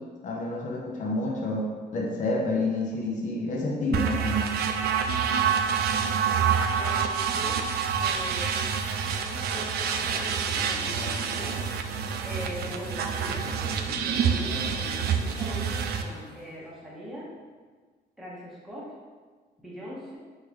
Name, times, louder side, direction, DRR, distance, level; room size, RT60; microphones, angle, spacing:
voice 1, 0.2-4.6, left 2 dB, 50° left, -2 dB, 0.8 m, -29 dB
sound 1, 3.9-16.0, right 7 dB, 70° right, 0.4 m, -27 dB
voice 2, 6.8-7.6 8.0-8.7 9.0-11.6 12.2-17.3 18.2-18.9 19.6-20.2, equal, ahead, -7 dB, 0.9 m, -41 dB
sound 2, 7.9-17.1, left 4 dB, 80° left, 0.6 m, -44 dB
4.2 x 3.6 x 3.4 m, 1.4 s
cardioid pair, 160°, 17 cm